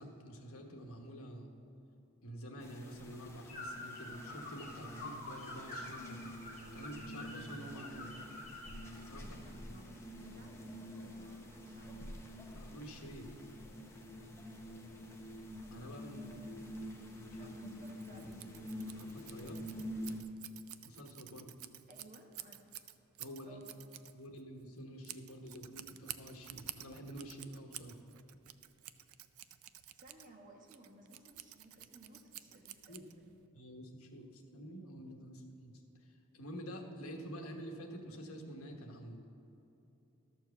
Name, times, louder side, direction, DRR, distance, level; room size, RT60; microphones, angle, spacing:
voice 1, 0.0-1.5 2.2-6.2 6.7-8.1 9.0-9.3 12.5-13.3 15.7-16.3 17.4-17.5 18.9-19.7 20.8-21.5 23.2-23.6 24.1-28.0 32.9-33.0 33.5-35.8 36.3-39.2, equal, 75° left, 3 dB, 1.2 m, -48 dB
sound 1, 2.6-20.2, equal, 10° left, 0.7 m, -47 dB
sound 2, 3.5-8.8, left 2 dB, 35° left, 1.9 m, -47 dB
voice 2, 9.2-12.1 16.1-16.9 17.4-18.5 21.9-22.8 23.4-23.8 29.9-33.3, right 1 dB, 35° right, 0 dB, 1.2 m, -58 dB
Scissors, 17.8-33.4, right 13 dB, 75° right, 0.4 m, -51 dB
12.5 x 4.6 x 6.9 m, 3.0 s
head